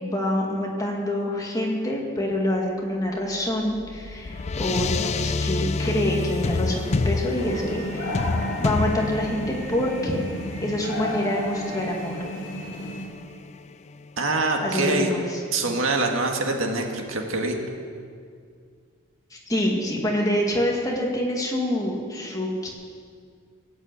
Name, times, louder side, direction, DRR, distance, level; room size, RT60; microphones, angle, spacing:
voice 1, 0.0-8.2 8.6-10.2 10.6-12.2 14.6-15.4 19.3-22.7, left 1 dB, 15° left, -1 dB, 2.0 m, -26 dB
sound 1, 3.3-14.1, left 3 dB, 35° left, 0.4 m, -29 dB
sound 2, 7.3-13.1, equal, 65° left, 3.2 m, -33 dB
voice 2, 14.2-15.1 15.5-17.6, right 3 dB, 75° right, 2 dB, 1.9 m, -24 dB
17.0 x 8.8 x 8.2 m, 2.2 s
head